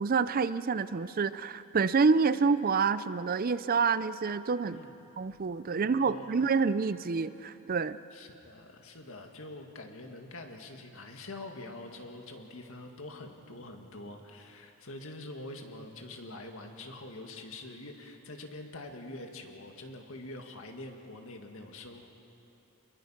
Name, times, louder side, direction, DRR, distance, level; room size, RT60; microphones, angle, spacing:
voice 1, 0.0-4.8 5.2-8.0, right 5 dB, 40° right, 15 dB, 0.4 m, -27 dB
voice 2, 5.7-6.4 8.1-22.1, left 2 dB, 65° left, 3 dB, 2.1 m, -45 dB
27.5 x 21.5 x 5.9 m, 3.0 s
head